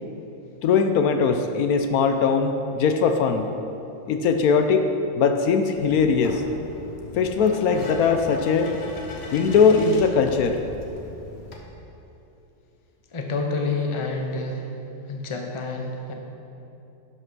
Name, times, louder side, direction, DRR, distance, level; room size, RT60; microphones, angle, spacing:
voice 1, 0.6-3.5 4.1-4.9 5.1-6.4 7.2-8.7 9.3-10.6, left 5 dB, 75° left, 7 dB, 1.0 m, -20 dB
sound 1, 5.7-11.6, left 2 dB, 45° left, 1.2 m, -38 dB
voice 2, 13.1-14.7 15.1-16.1, left 3 dB, 25° left, 2 dB, 0.7 m, -28 dB
11.0 x 5.6 x 6.0 m, 2.9 s
omnidirectional pair, 1.6 m